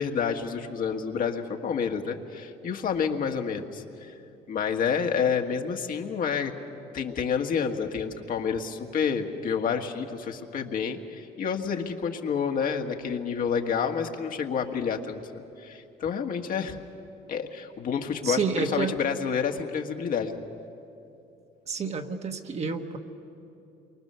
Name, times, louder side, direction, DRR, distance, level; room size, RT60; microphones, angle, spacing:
voice 1, 0.0-4.1 4.5-6.6 6.9-16.8 17.3-20.4, left 6 dB, 55° left, 4 dB, 1.7 m, -29 dB
voice 2, 18.2-19.0 21.7-23.0, right 5 dB, 40° right, 5 dB, 1.5 m, -29 dB
28.5 x 23.5 x 6.9 m, 2.8 s
cardioid pair, 110°, 17 cm